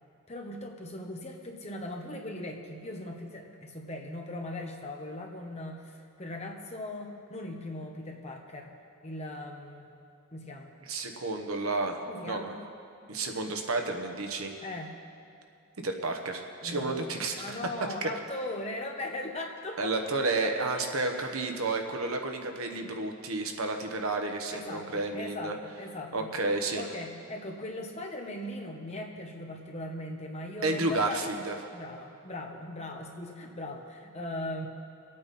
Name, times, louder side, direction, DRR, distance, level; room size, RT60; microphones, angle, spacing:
voice 1, 0.3-8.7 9.0-9.9 10.3-10.7 12.0-12.6 14.6-14.9 16.6-17.1 17.3-19.9 20.4-20.9 21.1-21.3 24.5-26.3 26.8-31.4 31.7-34.7, left 1 dB, 30° left, 2 dB, 1.2 m, -39 dB
voice 2, 10.9-12.0 12.2-12.5 13.1-14.5 15.8-17.6 18.0-18.1 19.8-25.5 26.1-26.8 30.6-31.6, right 3 dB, 70° right, 4 dB, 1.2 m, -31 dB
24.5 x 8.8 x 4.3 m, 2.5 s
head